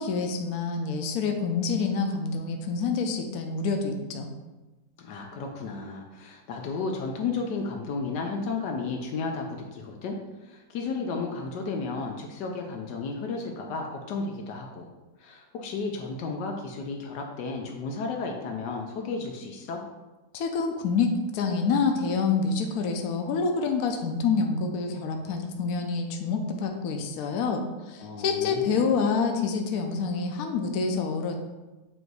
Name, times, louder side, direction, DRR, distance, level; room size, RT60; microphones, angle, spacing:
voice 1, 0.0-4.3 20.3-31.3, left 5 dB, 65° left, 4 dB, 1.1 m, -27 dB
voice 2, 5.0-10.2 10.4-14.9 15.2-19.8 28.0-28.9, left 4 dB, 85° left, 1 dB, 1.3 m, -33 dB
7.8 x 2.6 x 4.6 m, 1.1 s
omnidirectional pair, 1.8 m